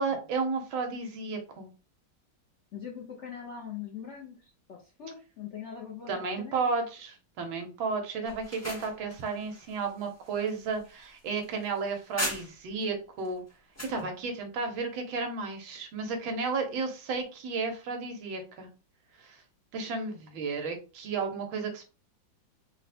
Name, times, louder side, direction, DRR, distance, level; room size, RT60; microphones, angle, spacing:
voice 1, 0.0-1.7 6.1-13.4 13.9-18.7 19.2-19.4 19.7-21.9, right 4 dB, 80° right, 4 dB, 1.6 m, -33 dB
voice 2, 2.7-6.7, left 8 dB, 80° left, -1 dB, 0.6 m, -42 dB
sound 1, 8.2-12.8 13.2-14.0, left 1 dB, 15° left, 0.5 m, -39 dB
4.0 x 2.1 x 4.1 m, 0.34 s
omnidirectional pair, 2.2 m